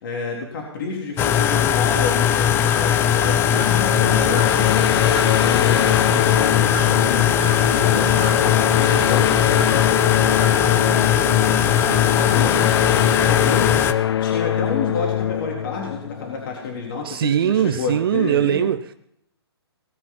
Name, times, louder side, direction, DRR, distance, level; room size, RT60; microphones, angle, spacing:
voice 1, 0.0-8.1 8.4-11.1 11.7-13.7 14.2-18.7, left 4 dB, 55° left, 3.9 m, -30 dB
sound 1, 1.2-13.9, left 9 dB, 15° left, 0.5 m, -19 dB
sound 2, 2.0-13.0, right 9 dB, 35° right, 2.0 m, -39 dB
sound 3, 3.5-16.9, left 10 dB, 70° left, 0.5 m, -23 dB
voice 2, 17.0-18.9, right 9 dB, 60° right, 0.5 m, -21 dB
19.0 x 8.4 x 5.7 m
hypercardioid pair, 140°, 14 cm